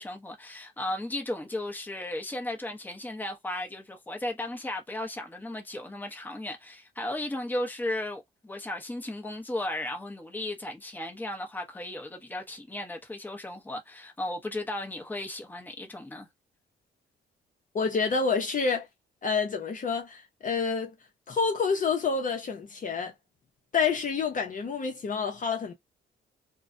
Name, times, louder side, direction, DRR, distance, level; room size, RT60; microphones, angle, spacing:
voice 1, 0.0-16.3, left 1 dB, 10° left, 0.8 m, -35 dB
voice 2, 17.7-18.9 19.2-20.9 21.3-23.1 23.7-25.7, left 5 dB, 40° left, 0.7 m, -28 dB
2.3 x 2.2 x 2.5 m
cardioid pair, 90°, 20 cm